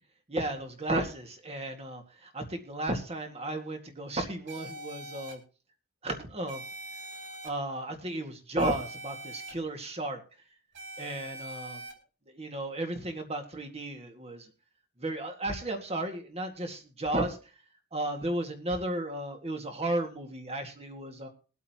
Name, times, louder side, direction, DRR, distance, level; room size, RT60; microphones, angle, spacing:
voice 1, 0.3-5.4 6.0-6.6 7.4-10.2 11.0-11.8 12.3-14.5 15.0-17.4 17.9-21.3, right 1 dB, 30° right, 4 dB, 2.0 m, -34 dB
sound 1, 4.5-5.3 6.5-7.5 8.6-9.5 10.7-11.9, right 2 dB, 55° right, 2.9 m, -43 dB
22.0 x 8.3 x 3.0 m, 0.35 s
head